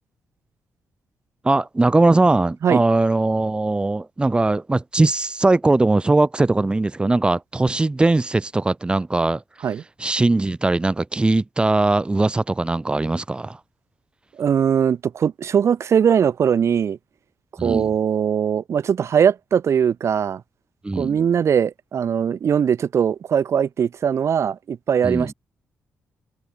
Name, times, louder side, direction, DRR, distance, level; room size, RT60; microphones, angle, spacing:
voice 1, 1.4-9.4 10.0-13.6 17.6-17.9 20.8-21.2 25.0-25.3, right 2 dB, 15° right, 4.2 m, -20 dB
voice 2, 14.4-17.0 17.6-20.4 20.9-25.3, right 8 dB, 55° right, 1.6 m, -20 dB
cardioid pair, 115°, 6 cm